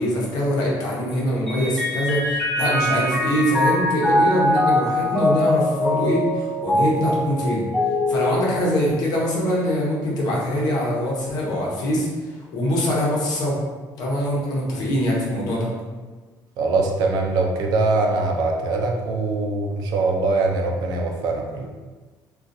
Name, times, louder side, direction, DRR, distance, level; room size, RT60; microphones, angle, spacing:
voice 1, 0.0-7.7 8.1-12.1 12.5-13.6 14.0-15.7, equal, 60° left, -4 dB, 0.9 m, -23 dB
Mallet percussion, 1.5-9.2, left 1 dB, 5° left, 0.6 m, -23 dB
voice 2, 16.6-21.7, right 3 dB, 65° right, 1 dB, 0.5 m, -22 dB
3.8 x 2.4 x 2.6 m, 1.3 s
cardioid pair, 165°, 8 cm